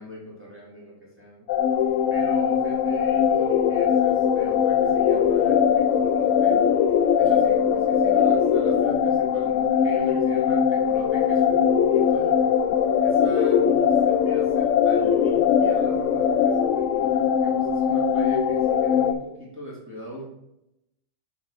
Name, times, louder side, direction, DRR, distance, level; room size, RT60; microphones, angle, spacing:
voice 1, 0.0-1.5 2.1-6.6 7.2-12.4 13.0-20.2, equal, 10° right, -6 dB, 2.4 m, -40 dB
sound 1, 1.5-19.1, left 8 dB, 80° left, 0.9 m, -21 dB
7.5 x 4.4 x 5.4 m, 0.86 s
omnidirectional pair, 1.3 m